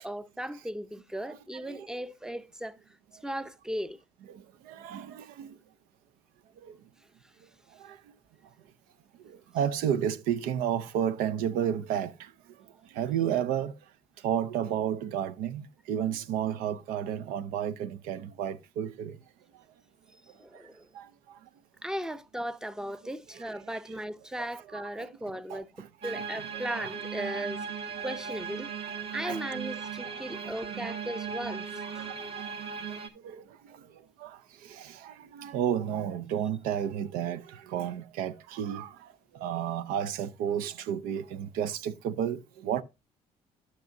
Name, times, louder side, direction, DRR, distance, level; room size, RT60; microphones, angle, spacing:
voice 1, 0.0-2.8 3.2-4.0 20.4-20.9 21.8-25.7 26.0-27.6 28.0-28.7 29.1-32.1, right 1 dB, 5° right, 0.6 m, -37 dB
voice 2, 4.3-5.5 6.6-6.7 7.8-8.0 9.3-12.3 12.9-13.7 14.2-19.2 20.9-21.1 24.7-25.1 25.5-25.9 26.8-26.9 29.3-29.4 30.3-30.9 31.8-32.2 33.2-33.4 34.2-39.0 39.3-42.8, right 9 dB, 85° right, 0.5 m, -32 dB
sound 1, 26.0-33.1, right 6 dB, 40° right, 1.3 m, -37 dB
12.0 x 6.1 x 2.6 m
supercardioid pair, 75°, 14 cm